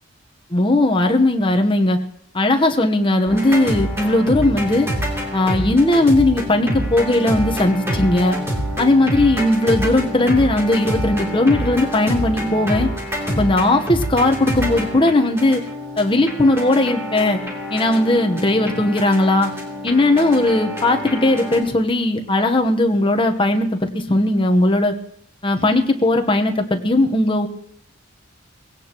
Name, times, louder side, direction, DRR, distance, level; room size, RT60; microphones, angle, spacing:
voice 1, 0.5-2.0 2.3-4.9 5.3-8.4 8.8-12.9 13.3-15.6 16.0-17.4 17.7-19.5 19.8-24.9 25.4-27.5, left 2 dB, 25° left, 4 dB, 1.0 m, -17 dB
sound 1, 3.3-21.6, equal, 15° right, 3.0 m, -27 dB
20.0 x 17.0 x 3.0 m, 0.68 s
head